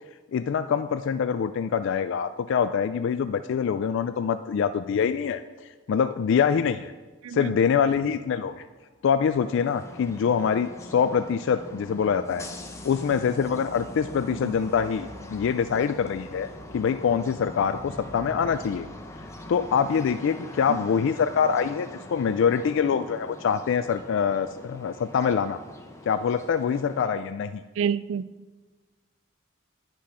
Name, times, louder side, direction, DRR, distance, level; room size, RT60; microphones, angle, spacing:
voice 1, 0.3-6.9 7.3-8.6 9.0-12.5 12.8-18.9 19.5-25.6 26.1-27.6, left 7 dB, 60° left, 11 dB, 0.3 m, -25 dB
sound 1, 7.0-7.1 7.3-7.4 8.0-18.9, left 1 dB, 40° left, 0.9 m, -48 dB
voice 2, 7.2-7.5 14.3-14.5 20.7-20.8 27.8-28.3, right 7 dB, 70° right, 17 dB, 0.3 m, -29 dB
sound 2, 9.3-27.3, left 1 dB, 15° left, 0.7 m, -44 dB
sound 3, 16.5-21.0 21.2-21.4, equal, 10° right, 1.2 m, -48 dB
10.5 x 6.1 x 5.6 m, 1.3 s
head